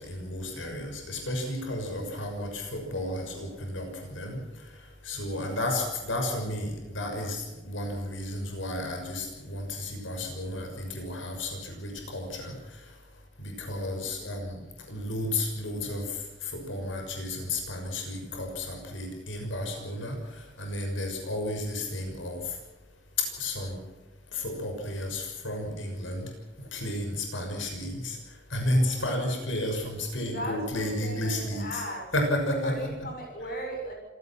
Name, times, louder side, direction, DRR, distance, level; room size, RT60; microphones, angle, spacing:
voice 1, 0.0-13.0 13.4-14.6 14.9-22.6 23.2-23.8 24.3-26.3 26.6-31.8 32.1-32.9, left 1 dB, 90° left, 3 dB, 6.3 m, -32 dB
voice 2, 14.0-14.6 28.6-29.2 30.3-32.1 32.6-33.9, equal, 50° left, 2 dB, 7.2 m, -38 dB
28.0 x 17.5 x 6.1 m, 1.2 s
head